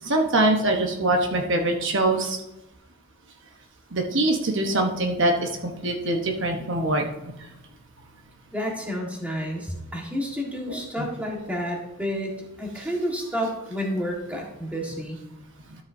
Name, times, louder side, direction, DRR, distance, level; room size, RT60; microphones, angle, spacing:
voice 1, 0.0-2.4 3.9-7.1 10.7-10.8, right 2 dB, 55° right, 2 dB, 1.1 m, -23 dB
voice 2, 8.5-15.2, equal, 5° right, -1 dB, 1.6 m, -30 dB
13.0 x 7.0 x 2.7 m, 0.90 s
head